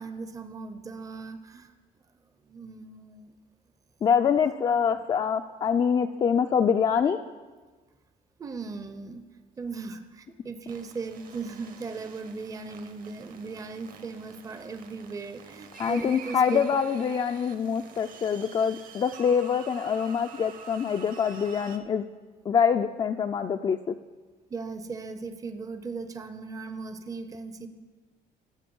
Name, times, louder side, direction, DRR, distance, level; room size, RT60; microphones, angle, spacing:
voice 1, 0.0-1.7 2.4-3.3 4.7-5.0 8.4-9.2 9.6-16.7 24.5-27.7, right 4 dB, 20° right, 9 dB, 0.5 m, -38 dB
voice 2, 4.0-7.2 15.8-22.0 22.5-23.8, left 7 dB, 30° left, 6 dB, 0.3 m, -25 dB
sound 1, 10.7-21.8, right 6 dB, 55° right, 1.0 m, -47 dB
14.5 x 5.0 x 5.3 m, 1.3 s
cardioid pair, 110°, 17 cm